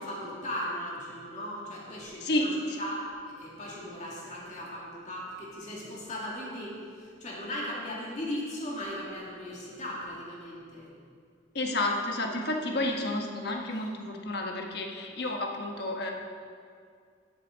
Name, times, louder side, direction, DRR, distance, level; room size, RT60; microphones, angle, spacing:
voice 1, 0.0-2.5 2.8-10.9 12.4-12.5, equal, 40° left, -5 dB, 2.3 m, -38 dB
voice 2, 2.2-2.8 11.5-16.1, left 1 dB, 55° left, 2 dB, 1.2 m, -30 dB
12.0 x 8.2 x 3.9 m, 2.2 s
head